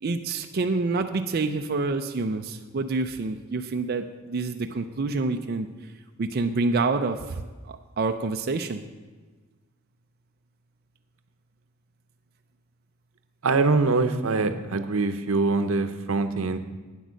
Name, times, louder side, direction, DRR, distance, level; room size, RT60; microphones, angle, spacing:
voice 1, 0.0-5.7 6.2-7.4 7.7-8.8, right 3 dB, 50° right, 6 dB, 0.5 m, -27 dB
voice 2, 13.4-16.6, right 3 dB, 85° right, 10 dB, 0.8 m, -23 dB
9.2 x 8.1 x 6.3 m, 1.3 s
head